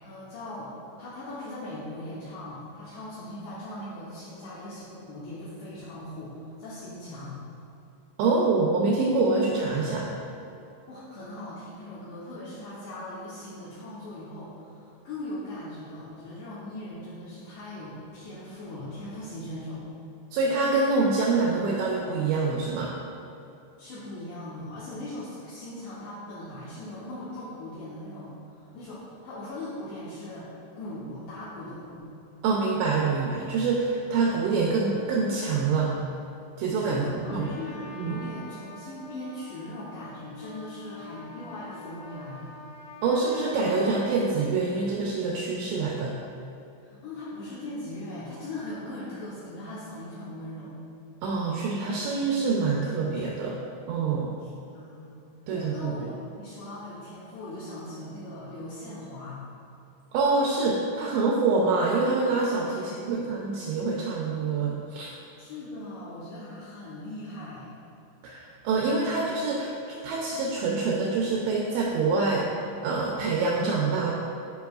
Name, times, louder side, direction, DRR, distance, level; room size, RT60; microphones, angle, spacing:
voice 1, 0.0-7.4 10.9-19.8 23.8-32.0 36.8-42.5 46.8-50.8 54.4-55.2 55.5-59.4 62.8-63.3 65.4-67.7, left 1 dB, 80° left, -9 dB, 2.6 m, -39 dB
voice 2, 8.2-10.1 20.3-22.9 32.4-35.9 36.6-37.5 38.0-38.2 43.0-46.2 51.2-53.6 53.9-54.3 55.5-55.9 60.1-65.1 68.2-69.8 70.0-74.1, right 3 dB, 85° right, -2 dB, 2.5 m, -26 dB
Trumpet, 37.3-44.4, left 2 dB, 60° left, 3.0 m, -45 dB
10.5 x 5.3 x 2.3 m, 2.8 s
omnidirectional pair, 5.6 m